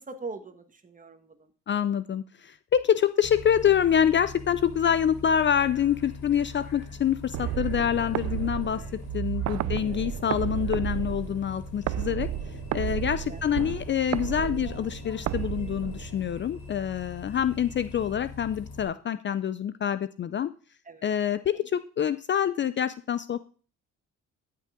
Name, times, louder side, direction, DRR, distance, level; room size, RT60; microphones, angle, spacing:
voice 1, 0.0-1.5 9.5-9.8 13.0-13.4 20.9-21.1, right 3 dB, 25° right, 8 dB, 1.4 m, -42 dB
voice 2, 1.7-8.8 9.1-12.3 12.7-20.5 21.0-23.5, left 9 dB, 40° left, 13 dB, 0.4 m, -26 dB
Bus, 3.2-18.8, left 3 dB, 90° left, 2.8 m, -42 dB
sound 1, 7.3-16.4, right 14 dB, 60° right, 0.4 m, -33 dB
14.0 x 5.5 x 3.7 m, 0.39 s
cardioid pair, 90°, 30 cm